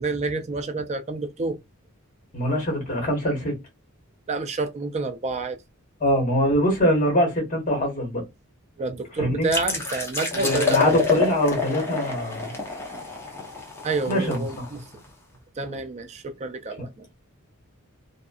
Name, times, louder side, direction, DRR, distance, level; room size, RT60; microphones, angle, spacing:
voice 1, 0.0-1.6 4.3-5.6 8.8-11.0 13.8-14.8 15.6-17.1, right 3 dB, 30° right, 0.4 m, -29 dB
voice 2, 2.3-3.5 6.0-8.2 9.2-9.5 10.3-12.5 14.1-14.4 16.8-16.9, equal, 35° left, 1.3 m, -23 dB
sound 1, 9.5-15.1, left 4 dB, 10° left, 0.7 m, -28 dB
2.6 x 2.4 x 2.3 m
head